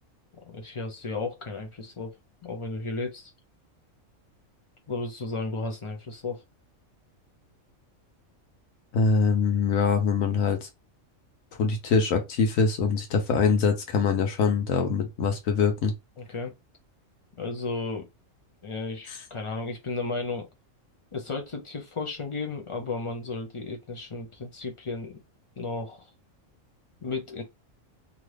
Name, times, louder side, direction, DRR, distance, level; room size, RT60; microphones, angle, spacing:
voice 1, 0.4-2.1 2.4-3.3 4.9-6.4 16.2-16.5 17.4-18.1 18.6-20.5 21.1-25.2 25.6-26.1 27.0-27.4, left 3 dB, 50° left, 0.4 m, -34 dB
voice 2, 8.9-10.7 11.6-15.9, left 5 dB, 85° left, 1.1 m, -23 dB
2.8 x 2.5 x 3.2 m
omnidirectional pair, 1.4 m